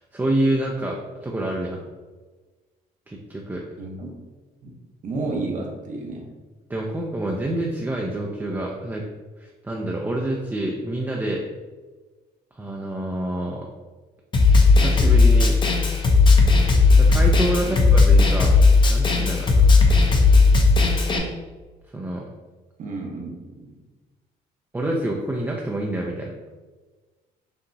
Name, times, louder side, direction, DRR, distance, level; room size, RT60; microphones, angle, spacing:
voice 1, 0.0-1.8 3.1-3.6 6.7-9.0 9.4-11.4 12.6-13.7 14.7-15.6 17.0-18.6 18.9-19.6 21.9-22.2 24.7-26.3, right 1 dB, 10° right, -1 dB, 0.4 m, -27 dB
voice 2, 3.8-4.1 4.6-4.7 5.0-6.3 17.6-17.8 22.8-23.8, right 3 dB, 50° right, -1 dB, 0.8 m, -32 dB
Snare drum, 14.3-21.2, left 4 dB, 30° left, 0.6 m, -16 dB
5.4 x 2.8 x 2.6 m, 1.3 s
cardioid pair, 110°, 17 cm